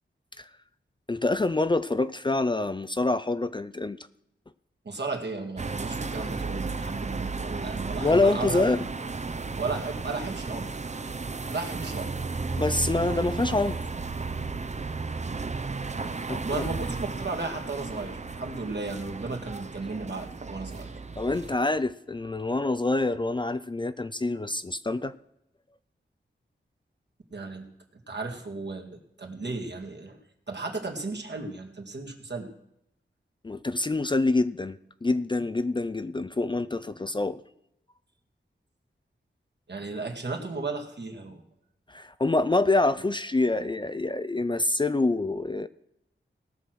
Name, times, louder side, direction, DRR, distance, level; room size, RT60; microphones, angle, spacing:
voice 1, 1.1-4.0 8.0-8.8 12.6-13.8 16.3-16.7 21.2-25.1 33.4-37.4 41.9-45.7, left 2 dB, 25° left, 11 dB, 0.4 m, -26 dB
voice 2, 4.8-8.6 9.3-10.7 11.5-12.1 16.4-20.9 27.3-27.7 28.1-30.2 30.5-32.5 39.7-41.4, right 3 dB, 60° right, 2 dB, 2.1 m, -35 dB
sound 1, 5.6-21.6, right 4 dB, 35° right, 0.7 m, -34 dB
18.0 x 6.5 x 6.1 m, 0.81 s
wide cardioid pair, 80°, 20 cm